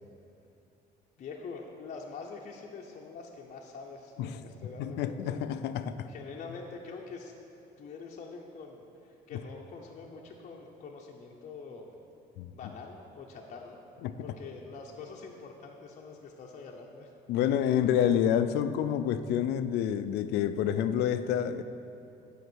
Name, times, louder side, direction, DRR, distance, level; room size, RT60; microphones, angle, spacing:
voice 1, 1.2-5.4 6.0-7.3 7.8-12.0 12.5-13.8 14.2-17.1, left 4 dB, 45° left, -1 dB, 0.7 m, -45 dB
voice 2, 4.8-6.1 9.3-9.4 12.4-12.5 14.0-14.1 17.3-21.6, left 9 dB, 80° left, 11 dB, 0.4 m, -28 dB
8.1 x 4.7 x 6.1 m, 2.7 s
cardioid pair, 110°, 17 cm